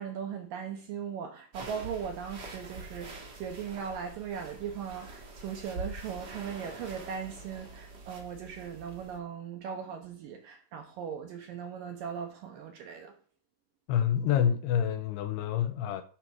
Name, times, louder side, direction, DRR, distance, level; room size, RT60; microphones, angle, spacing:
voice 1, 0.0-13.1, right 7 dB, 70° right, 2.2 m, -39 dB
sound 1, 1.5-9.2, right 3 dB, 50° right, 1.2 m, -45 dB
voice 2, 13.9-16.0, left 9 dB, 85° left, 2.4 m, -27 dB
11.0 x 4.6 x 6.2 m
omnidirectional pair, 5.1 m